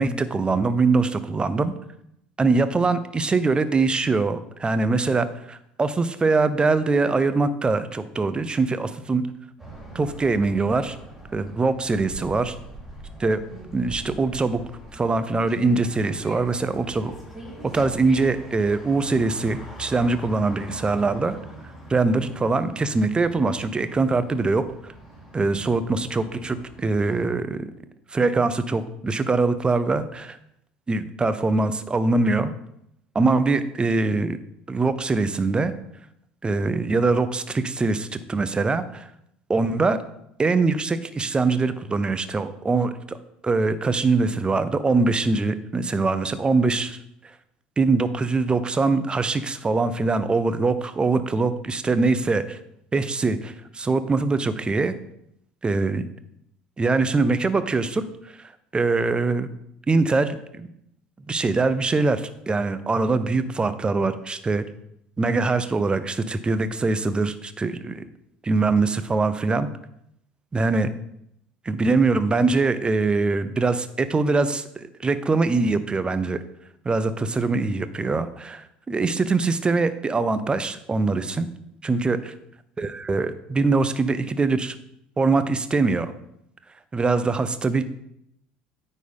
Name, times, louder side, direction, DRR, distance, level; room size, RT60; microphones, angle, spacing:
voice 1, 0.0-1.7 2.4-9.2 9.9-11.0 11.3-12.6 13.2-13.4 13.7-14.6 14.9-17.1 17.7-21.4 21.9-24.6 25.3-27.7 28.1-30.4 30.9-32.5 33.1-34.4 34.7-35.7 36.4-39.1 39.5-40.0 40.4-43.2 43.4-47.0 47.8-52.6 52.9-54.9 55.6-56.1 56.8-58.0 58.4-59.5 59.9-60.7 61.3-64.6 65.2-68.0 68.4-69.7 70.5-70.9 71.7-76.4 76.8-81.5 81.8-82.2 82.8-84.7 85.2-86.1 86.9-87.8, right 3 dB, 20° right, 12 dB, 0.7 m, -23 dB
sound 1, 9.6-27.3, right 1 dB, 5° right, 3.7 m, -42 dB
9.3 x 4.2 x 5.4 m, 0.78 s
figure-of-eight pair, 65°, 5 cm